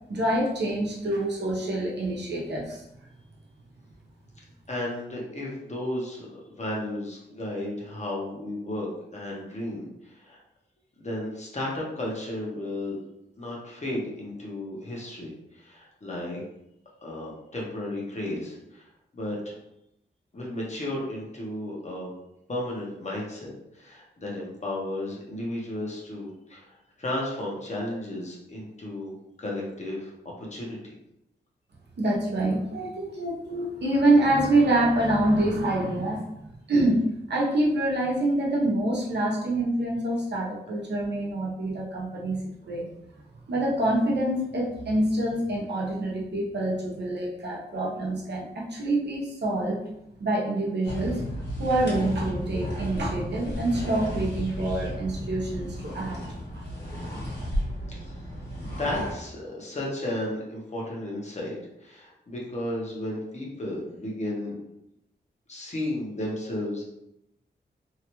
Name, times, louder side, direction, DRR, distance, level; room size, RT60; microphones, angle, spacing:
voice 1, 0.1-2.8 32.0-36.4 36.7-37.0 37.3-42.9 43.5-49.8 50.2-51.1 51.6-56.2 56.5-56.6, right 1 dB, 70° right, -4 dB, 0.9 m, -26 dB
voice 2, 4.7-6.3 6.6-10.4 11.0-13.0 13.4-16.4 17.0-18.9 19.1-19.6 20.3-22.1 22.5-30.1 30.4-30.9 58.6-64.6 65.5-66.8, left 1 dB, 40° left, -3 dB, 0.9 m, -33 dB
sound 1, 50.8-59.1, equal, 70° left, 1.2 m, -33 dB
2.9 x 2.4 x 3.0 m, 0.83 s
wide cardioid pair, 100°, 18 cm